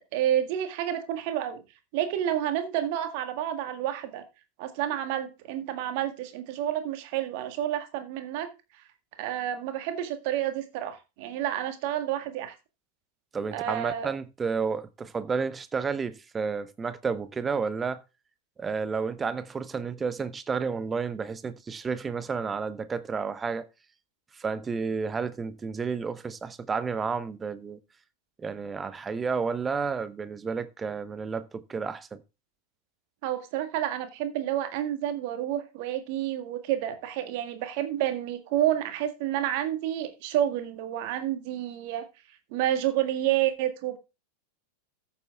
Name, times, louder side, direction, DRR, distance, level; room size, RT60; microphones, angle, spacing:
voice 1, 0.1-1.6 1.9-4.2 4.6-8.5 9.2-12.6 13.5-14.1 33.2-42.1 42.5-44.0, right 11 dB, 45° right, 1.8 m, -29 dB
voice 2, 13.3-18.0 18.6-23.7 24.3-27.8 28.4-32.2, right 5 dB, 15° right, 0.9 m, -31 dB
14.0 x 7.2 x 3.5 m
figure-of-eight pair, 90°, 0 cm